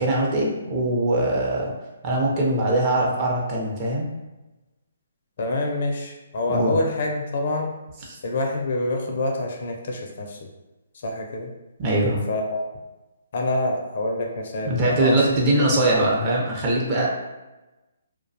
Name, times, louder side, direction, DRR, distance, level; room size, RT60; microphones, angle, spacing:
voice 1, 0.0-1.7 2.0-4.1 6.5-6.7 8.1-8.2 11.8-12.2 14.7-17.1, right 1 dB, 30° right, -3 dB, 0.6 m, -22 dB
voice 2, 5.4-7.7 8.2-10.5 10.9-11.5 12.3-12.7 13.3-15.3, left 2 dB, 55° left, 1 dB, 0.5 m, -26 dB
2.3 x 2.1 x 2.7 m, 1.1 s
hypercardioid pair, 145°, 0 cm